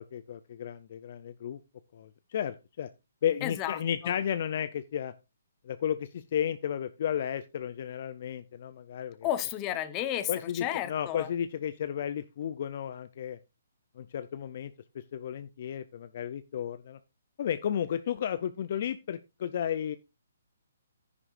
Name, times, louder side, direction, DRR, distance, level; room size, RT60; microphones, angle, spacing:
voice 1, 0.0-1.6 1.9-2.9 3.2-5.1 5.6-9.3 10.3-13.4 14.0-17.0 17.4-20.0, left 9 dB, 50° left, 13 dB, 0.5 m, -33 dB
voice 2, 3.4-4.1 9.2-11.3, left 12 dB, 25° left, 12 dB, 1.0 m, -33 dB
10.5 x 9.7 x 2.5 m, 0.26 s
hypercardioid pair, 150°, 0 cm